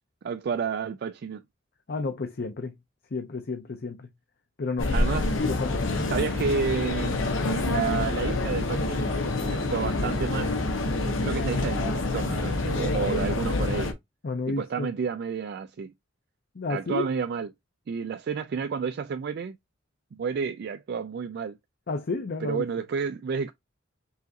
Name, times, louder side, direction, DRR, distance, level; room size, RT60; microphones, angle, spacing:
voice 1, 0.2-1.4 4.9-5.4 6.1-7.2 7.6-9.1 9.5-10.6 11.0-14.0 14.5-15.9 16.7-17.5 17.9-19.6 20.1-21.6 22.4-23.5, right 6 dB, 55° right, 0.3 m, -30 dB
voice 2, 1.9-2.7 3.1-4.1 4.6-4.9 5.4-5.9 14.2-14.9 16.6-17.1 21.9-22.6, left 3 dB, 50° left, 0.6 m, -31 dB
sound 1, 4.8-13.9, left 2 dB, 75° left, 0.9 m, -27 dB
5.6 x 2.5 x 2.8 m
head